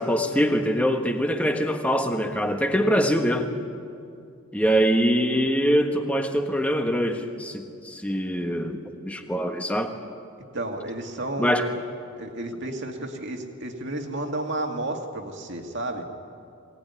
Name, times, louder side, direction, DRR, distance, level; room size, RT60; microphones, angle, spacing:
voice 1, 0.0-3.5 4.5-8.8 9.0-9.9 11.4-11.7, equal, 5° left, 4 dB, 1.4 m, -23 dB
voice 2, 10.5-11.8 12.2-16.1, right 1 dB, 50° right, 3 dB, 2.3 m, -32 dB
22.5 x 18.0 x 9.6 m, 2.4 s
head